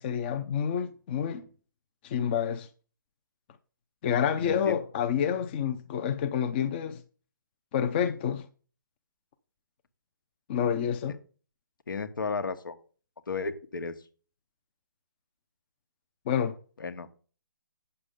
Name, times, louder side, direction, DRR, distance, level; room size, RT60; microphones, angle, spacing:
voice 1, 0.0-1.5 2.0-2.7 4.0-7.0 7.7-8.5 10.5-11.2 16.3-16.6, left 8 dB, 30° left, 0.6 m, -28 dB
voice 2, 4.4-4.8 11.9-12.8 13.3-13.9 16.8-17.1, left 4 dB, 75° left, 1.3 m, -33 dB
8.8 x 6.9 x 3.7 m
hypercardioid pair, 150°, 11 cm